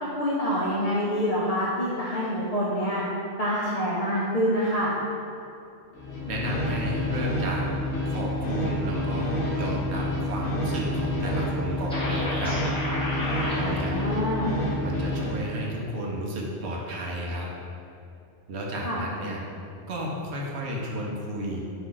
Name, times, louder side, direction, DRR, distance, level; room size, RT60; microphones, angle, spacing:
voice 1, 0.0-3.0 3.4-4.9 13.5-14.5 18.8-19.0, equal, 45° left, -7 dB, 0.5 m, -26 dB
sound 1, 5.9-15.5, left 1 dB, 75° left, 1.0 m, -28 dB
voice 2, 6.3-7.7 8.1-12.6 13.5-13.9 14.8-17.5 18.5-19.4 19.9-21.6, equal, 65° right, -2 dB, 0.9 m, -32 dB
sound 2, 11.9-13.6, left 1 dB, 5° left, 0.9 m, -31 dB
4.4 x 2.6 x 3.8 m, 2.6 s
omnidirectional pair, 1.3 m